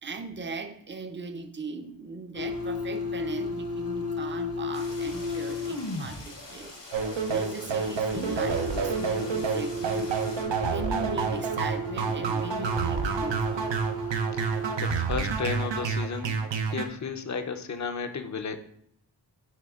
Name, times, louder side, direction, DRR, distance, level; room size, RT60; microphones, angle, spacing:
voice 1, 0.0-6.8 7.3-10.4 10.7-13.7, right 4 dB, 25° right, 8 dB, 0.5 m, -39 dB
sound 1, 2.3-6.2 8.1-14.8, left 1 dB, 60° left, 1.0 m, -33 dB
sound 2, 4.7-10.4, left 2 dB, 80° left, 1.9 m, -45 dB
sound 3, 6.9-16.9, right 5 dB, 90° right, 0.7 m, -29 dB
voice 2, 14.8-16.3 16.7-18.6, left 5 dB, 45° left, 8 dB, 0.6 m, -33 dB
10.0 x 4.1 x 2.4 m, 0.68 s
wide cardioid pair, 100°, 42 cm